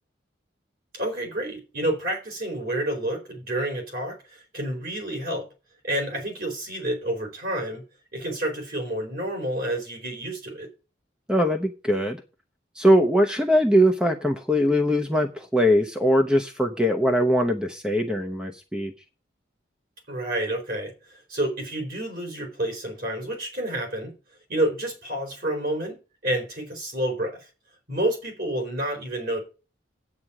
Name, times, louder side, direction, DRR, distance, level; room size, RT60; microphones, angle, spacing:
voice 1, 0.9-5.5 5.8-7.8 8.1-10.7 20.1-24.1 24.5-26.0 26.2-27.4 27.9-29.4, right 1 dB, 50° right, 4.2 m, -29 dB
voice 2, 11.3-12.2 12.7-18.9, equal, 5° right, 0.8 m, -21 dB
9.5 x 8.7 x 4.9 m
head